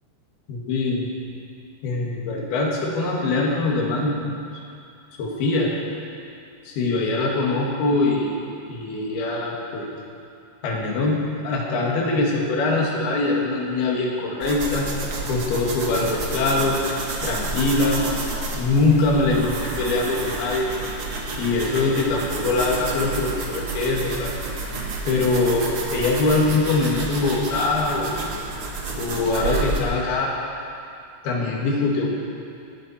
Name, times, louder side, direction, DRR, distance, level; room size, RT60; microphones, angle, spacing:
voice 1, 0.5-1.1 1.8-4.4 5.2-5.8 6.7-8.4 8.7-9.9 10.6-14.9 15.3-16.8 17.2-18.1 18.5-20.7 21.4-24.3 25.1-28.4 29.0-30.3 31.2-32.1, left 2 dB, 70° left, -2 dB, 3.8 m, -23 dB
sound 1, 14.4-29.8, right 2 dB, 60° right, 1.4 m, -30 dB
20.0 x 12.0 x 4.3 m, 2.5 s
omnidirectional pair, 4.8 m